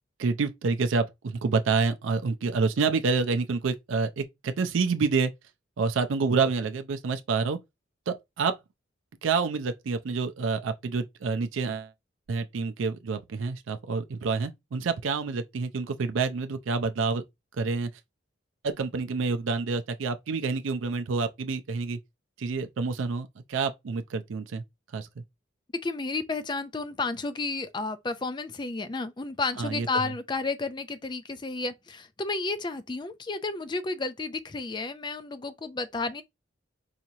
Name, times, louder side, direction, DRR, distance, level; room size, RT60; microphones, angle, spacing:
voice 1, 0.2-5.3 5.8-7.6 8.1-8.6 9.2-11.9 12.3-17.2 17.6-17.9 18.6-22.0 22.4-24.6 24.9-25.2 29.6-30.1, right 4 dB, 80° right, 0.4 m, -28 dB
voice 2, 25.8-36.2, left 3 dB, 25° left, 0.4 m, -32 dB
4.9 x 2.9 x 2.7 m
head